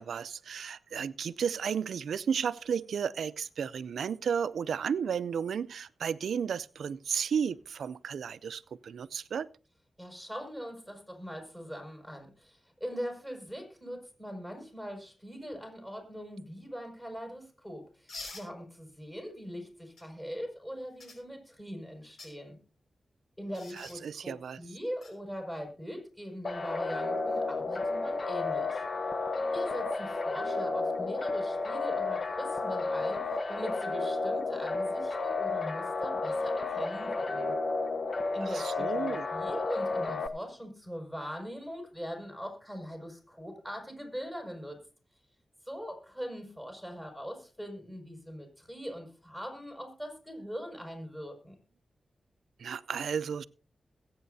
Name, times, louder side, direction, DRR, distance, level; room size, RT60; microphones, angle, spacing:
voice 1, 0.0-9.5 23.7-24.6 38.4-39.2 52.6-53.4, right 7 dB, 85° right, 0.4 m, -33 dB
voice 2, 10.0-22.6 23.4-28.8 29.5-33.2 33.5-37.5 38.3-44.8 45.6-51.6, equal, 10° left, 6.0 m, -41 dB
sound 1, 18.1-18.5 20.0-20.1 21.0-21.2 22.0-22.3 23.5-24.0 25.0-25.1 27.2-27.4, left 3 dB, 70° left, 5.2 m, -45 dB
sound 2, 26.4-40.3, left 3 dB, 50° left, 1.0 m, -32 dB
21.5 x 8.7 x 2.7 m
cardioid pair, 65°, 0 cm